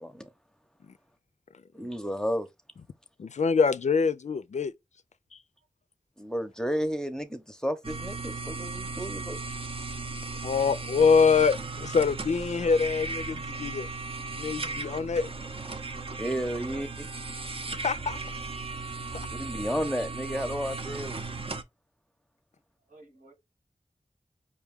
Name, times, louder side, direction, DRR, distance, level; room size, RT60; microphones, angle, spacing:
voice 1, 1.7-2.5 6.2-9.4 16.2-17.1 19.3-21.2, equal, 5° left, 0.7 m, -32 dB
voice 2, 3.2-4.7 5.3-5.4 10.4-13.9 14.4-15.3 17.7-18.2 19.1-19.3, left 5 dB, 60° left, 0.4 m, -25 dB
sound 1, 7.8-21.6, right 3 dB, 45° right, 0.6 m, -36 dB
voice 3, 19.2-19.6 22.9-23.3, right 2 dB, 85° right, 1.6 m, -55 dB
5.2 x 2.3 x 3.5 m
wide cardioid pair, 45°, 13 cm